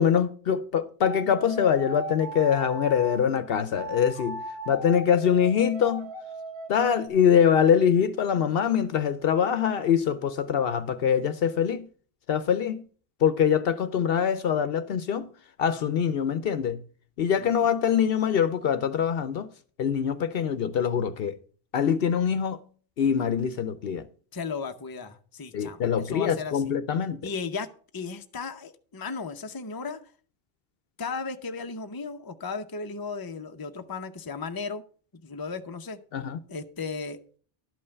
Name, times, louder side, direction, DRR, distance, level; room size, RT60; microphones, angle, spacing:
voice 1, 0.0-4.4 4.7-6.1 6.7-11.9 12.3-12.8 13.2-15.3 15.6-16.8 17.2-19.5 19.8-21.4 21.7-22.6 23.0-24.1 25.5-27.2 36.1-36.4, left 8 dB, 70° left, 0.8 m, -24 dB
sound 1, 1.0-3.2 3.8-7.1, right 1 dB, 70° right, 2.5 m, -37 dB
voice 2, 17.4-17.7 24.3-26.7 27.2-30.0 31.0-34.8 35.1-36.0 36.5-37.2, left 4 dB, 25° left, 0.7 m, -35 dB
12.0 x 5.5 x 6.7 m
omnidirectional pair, 1.0 m